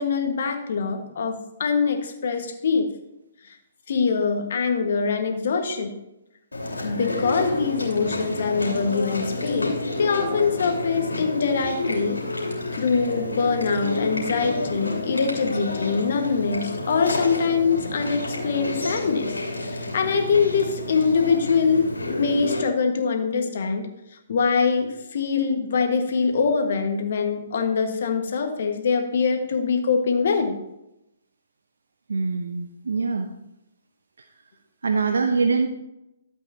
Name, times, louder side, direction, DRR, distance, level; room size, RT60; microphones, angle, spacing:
voice 1, 0.0-2.9 3.9-5.9 6.8-12.2 12.7-19.3 19.9-23.9 24.3-30.6, left 5 dB, 55° left, 5 dB, 1.5 m, -23 dB
Chewing mastication, 6.5-22.6, left 2 dB, 80° left, 2.8 m, -29 dB
voice 2, 32.1-33.3 34.8-35.7, right 4 dB, 70° right, 6 dB, 0.7 m, -23 dB
12.5 x 8.2 x 2.8 m, 0.88 s
figure-of-eight pair, 130°, 0 cm